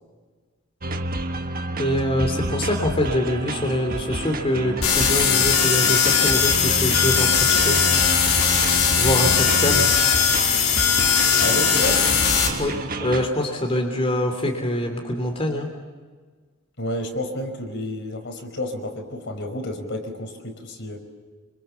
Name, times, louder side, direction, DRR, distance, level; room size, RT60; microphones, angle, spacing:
sound 1, 0.8-13.3, right 1 dB, 45° right, 1.4 m, -29 dB
voice 1, 1.8-7.8 9.0-9.9 12.6-12.7 13.0-15.7, left 1 dB, 30° left, 2 dB, 3.2 m, -24 dB
sound 2, 4.8-12.5, left 7 dB, 85° left, 5.0 m, -19 dB
voice 2, 11.4-12.1 16.8-21.0, left 1 dB, 60° left, 4 dB, 5.3 m, -30 dB
28.5 x 27.0 x 7.2 m, 1.5 s
head